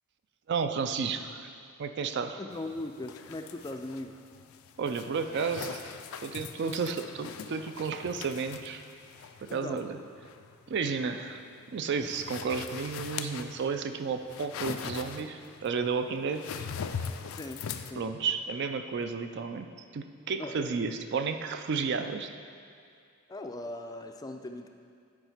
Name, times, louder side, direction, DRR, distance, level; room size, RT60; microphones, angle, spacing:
voice 1, 0.5-1.5 1.8-2.4 4.8-6.0 6.2-8.8 9.5-10.0 10.7-11.4 11.7-16.4 17.9-19.7 19.9-22.3, right 5 dB, 55° right, 8 dB, 0.4 m, -32 dB
voice 2, 2.4-4.2 9.5-9.9 12.0-12.1 17.4-18.1 20.4-20.8 23.3-24.7, left 1 dB, 20° left, 5 dB, 0.3 m, -39 dB
sound 1, 2.5-17.9, left 7 dB, 85° left, 0.4 m, -42 dB
9.2 x 5.0 x 4.9 m, 2.4 s
head